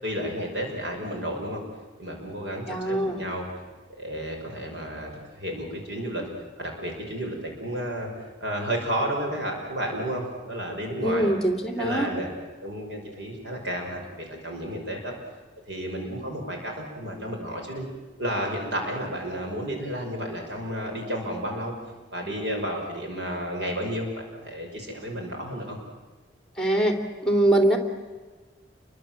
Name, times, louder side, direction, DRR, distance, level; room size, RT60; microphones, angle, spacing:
voice 1, 0.0-1.6 2.0-3.5 4.0-5.1 5.4-6.3 6.6-8.1 8.4-11.3 11.8-12.3 12.6-15.1 15.7-17.9 18.2-21.7 22.1-25.8, equal, 65° right, 1 dB, 6.1 m, -32 dB
voice 2, 2.7-3.2 11.0-12.1 26.6-27.0 27.2-27.8, right 1 dB, 5° left, 5 dB, 3.1 m, -22 dB
29.0 x 23.5 x 7.7 m, 1.3 s
head